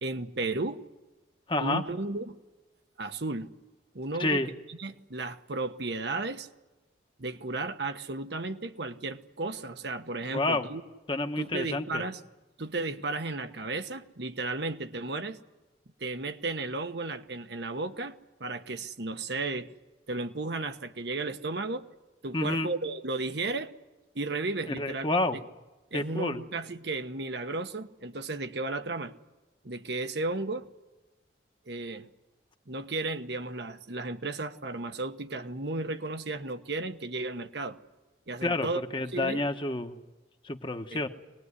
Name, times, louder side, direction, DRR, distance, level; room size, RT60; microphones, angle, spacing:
voice 1, 0.0-0.8 1.6-2.4 3.0-3.5 3.9-4.4 4.7-6.5 7.2-10.8 11.4-12.2 12.6-15.4 16.0-19.7 20.1-21.9 22.2-23.7 24.1-25.2 25.9-29.1 29.6-30.7 31.7-32.1 32.7-37.8 38.3-38.8 39.1-39.4 40.9-41.0, right 2 dB, 65° right, 8 dB, 1.1 m, -34 dB
voice 2, 1.5-1.8 4.2-4.5 10.3-10.7 11.1-12.0 22.3-22.7 24.7-25.4 25.9-26.4 38.4-40.0 40.4-41.1, left 2 dB, 25° left, 7 dB, 1.1 m, -29 dB
24.0 x 20.0 x 9.8 m, 1.1 s
head